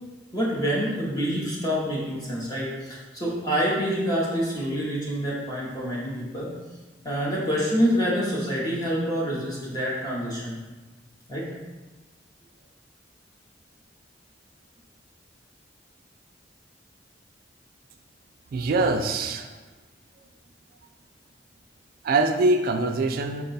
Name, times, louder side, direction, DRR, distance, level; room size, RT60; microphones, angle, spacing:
voice 1, 0.3-6.5 7.0-10.6 11.3-11.5, equal, 20° left, -5 dB, 0.7 m, -27 dB
voice 2, 18.5-19.6 22.0-23.4, right 2 dB, 55° right, 6 dB, 0.3 m, -23 dB
4.6 x 2.2 x 3.9 m, 1.2 s
head